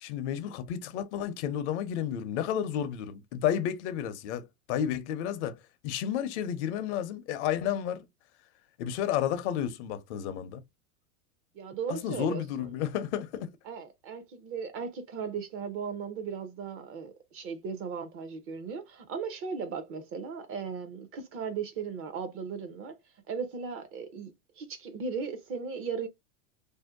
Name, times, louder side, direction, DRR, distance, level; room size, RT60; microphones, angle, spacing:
voice 1, 0.0-5.6 5.8-8.1 8.8-10.6 11.9-13.5, left 9 dB, 55° left, 0.6 m, -31 dB
voice 2, 11.5-12.7 13.7-23.0 23.3-26.1, right 6 dB, 35° right, 0.6 m, -37 dB
2.7 x 2.1 x 2.3 m
hypercardioid pair, 115°, 40 cm